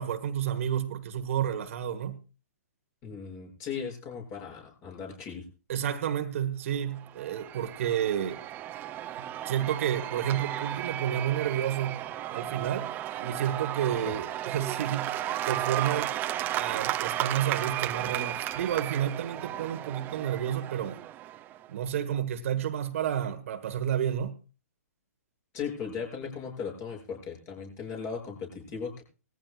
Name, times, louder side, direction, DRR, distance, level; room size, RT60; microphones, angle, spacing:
voice 1, 0.0-2.2 5.7-8.4 9.4-12.0 12.3-12.9 13.2-15.2 15.4-16.1 16.5-21.0 21.7-24.4, right 10 dB, 55° right, 1.5 m, -30 dB
voice 2, 3.0-5.5 14.1-14.2 25.5-29.0, left 6 dB, 30° left, 7.0 m, -37 dB
Cheering / Applause / Crowd, 6.9-21.7, right 13 dB, 20° right, 0.6 m, -34 dB
20.0 x 14.5 x 2.4 m
hypercardioid pair, 130°, 9 cm